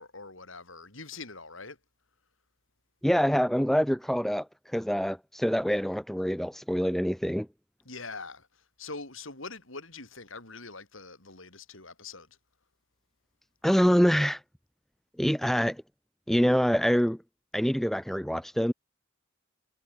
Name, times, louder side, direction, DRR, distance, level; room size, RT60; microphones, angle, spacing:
voice 1, 0.0-1.8 7.8-12.3, left 3 dB, 70° left, 6.3 m, -43 dB
voice 2, 3.0-7.5 13.6-14.4 15.2-15.8 16.3-17.2 17.5-18.7, equal, ahead, 0.6 m, -25 dB
head